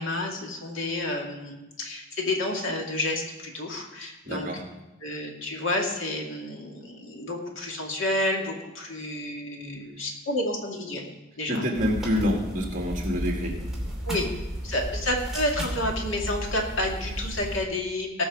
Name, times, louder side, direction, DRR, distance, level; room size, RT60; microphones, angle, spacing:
voice 1, 0.0-4.5 5.0-11.0 11.4-11.7 14.0-14.3 14.6-18.2, left 1 dB, 70° left, 0 dB, 2.3 m, -30 dB
voice 2, 4.2-4.6 11.5-13.6, equal, 40° right, 0 dB, 2.1 m, -27 dB
sound 1, 11.7-17.6, equal, ahead, 2.7 m, -33 dB
18.5 x 6.2 x 4.8 m, 1.0 s
head